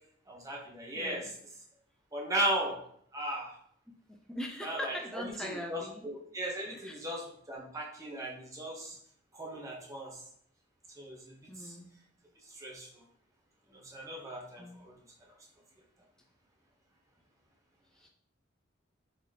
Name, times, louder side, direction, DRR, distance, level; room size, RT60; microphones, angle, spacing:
voice 1, 0.3-1.3 2.1-2.8 3.1-3.5 4.6-9.0 9.3-10.2 11.0-11.2 11.6-11.7 12.5-13.0 13.7-14.9, right 1 dB, 15° right, -3 dB, 0.8 m, -37 dB
voice 2, 1.0-1.3 4.1-6.1 6.7-7.0 11.5-11.9 14.6-14.9 18.0-18.1, left 1 dB, 5° left, 1 dB, 0.3 m, -41 dB
3.9 x 2.8 x 3.2 m, 0.65 s
head